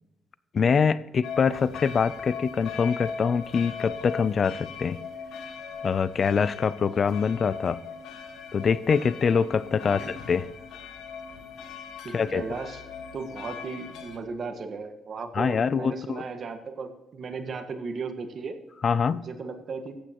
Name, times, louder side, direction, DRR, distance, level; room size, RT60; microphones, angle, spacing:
voice 1, 0.5-5.0 5.8-7.8 8.5-10.5 12.1-12.4 15.3-16.2 18.8-19.3, left 6 dB, 45° left, 18 dB, 0.4 m, -24 dB
sound 1, 1.2-14.2, left 6 dB, 80° left, 1.4 m, -39 dB
voice 2, 12.0-12.8 13.1-18.6 19.1-19.9, right 4 dB, 50° right, 7 dB, 1.5 m, -36 dB
14.5 x 8.8 x 3.0 m, 1.0 s
cardioid pair, 90°, 0 cm